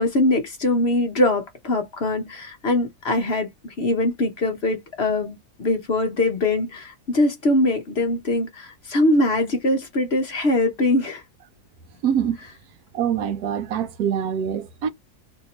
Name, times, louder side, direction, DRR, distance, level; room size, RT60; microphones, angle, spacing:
voice 1, 0.0-11.2, left 1 dB, 50° left, 0.8 m, -22 dB
voice 2, 12.0-12.4 12.9-14.9, right 8 dB, 70° right, 1.1 m, -24 dB
2.9 x 2.6 x 4.1 m
omnidirectional pair, 1.7 m